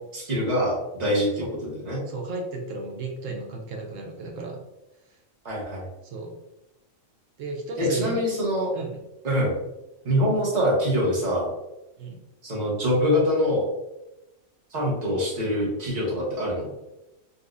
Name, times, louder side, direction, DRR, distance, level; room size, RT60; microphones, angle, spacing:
voice 1, 0.1-2.0 5.4-5.9 7.8-8.7 9.2-9.6 10.0-11.5 12.4-13.7 14.7-16.7, equal, 35° right, -4 dB, 1.0 m, -24 dB
voice 2, 2.1-4.6 6.0-6.3 7.4-8.2 8.7-9.0 12.0-12.2, right 3 dB, 70° right, 1 dB, 1.0 m, -34 dB
4.0 x 2.3 x 2.5 m, 0.95 s
omnidirectional pair, 1.4 m